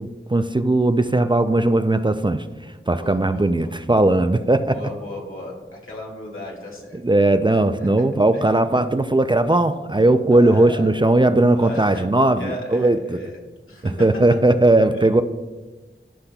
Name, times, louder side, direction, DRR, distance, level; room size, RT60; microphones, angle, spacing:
voice 1, 0.0-2.4 2.9-4.8 7.0-13.2 14.0-15.2, right 2 dB, 25° right, 10 dB, 0.4 m, -18 dB
voice 2, 2.9-3.7 4.7-7.0 7.5-7.9 8.3-8.5 10.3-10.9 11.5-12.1 12.3-13.4 13.7-14.1 14.9-15.2, left 1 dB, 75° left, -3 dB, 2.1 m, -36 dB
13.5 x 5.7 x 2.3 m, 1.2 s
wide cardioid pair, 40°, 21 cm